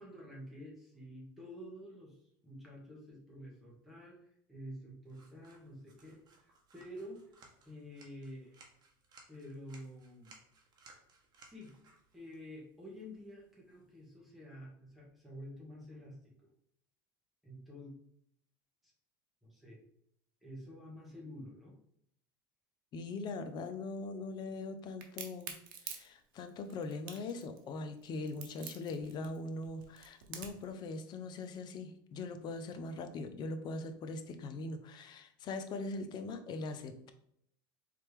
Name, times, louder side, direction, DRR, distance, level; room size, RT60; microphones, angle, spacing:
voice 1, 0.0-7.3 7.6-8.5 9.3-10.3 11.4-11.7 12.1-16.2 17.4-17.9 19.4-19.8 20.4-21.7, equal, ahead, -5 dB, 1.7 m, -49 dB
sound 1, 5.1-14.2, right 3 dB, 40° right, 1.2 m, -63 dB
voice 2, 22.9-37.1, left 3 dB, 40° left, 8 dB, 0.6 m, -41 dB
Crack, 25.0-30.7, right 7 dB, 75° right, 0.8 m, -47 dB
4.2 x 3.3 x 3.4 m, 0.72 s
supercardioid pair, 110°, 11 cm